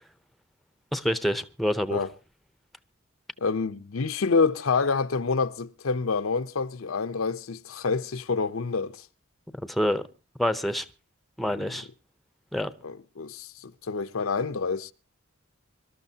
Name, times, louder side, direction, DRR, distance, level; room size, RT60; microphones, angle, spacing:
voice 1, 0.9-2.0 9.6-10.0 10.4-10.8 11.4-11.9 12.5-12.7, equal, ahead, 0.6 m, -26 dB
voice 2, 3.4-9.1 11.4-11.5 12.8-14.9, left 4 dB, 80° left, 0.7 m, -27 dB
25.0 x 12.5 x 2.8 m
head